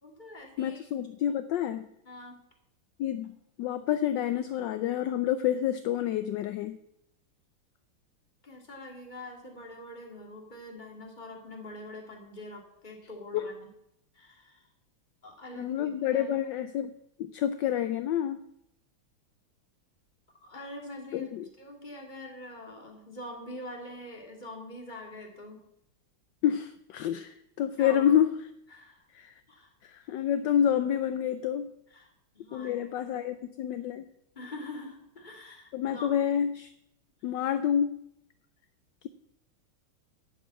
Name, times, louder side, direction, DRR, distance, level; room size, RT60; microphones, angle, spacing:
voice 1, 0.0-0.8 2.1-2.4 8.4-13.5 14.1-14.7 15.2-15.8 16.1-16.5 20.4-21.3 21.6-25.6 27.8-28.1 28.7-29.0 29.5-29.7 31.9-33.3 34.4-36.1, left 1 dB, 20° left, 1 dB, 2.1 m, -44 dB
voice 2, 0.6-1.9 3.0-6.8 13.3-13.5 15.6-16.9 17.2-18.4 21.1-21.5 26.4-28.3 29.1-29.3 29.8-31.7 32.5-34.1 35.7-36.7 37.2-38.0, left 10 dB, 75° left, 10 dB, 1.1 m, -28 dB
12.0 x 5.5 x 8.4 m, 0.77 s
omnidirectional pair, 2.4 m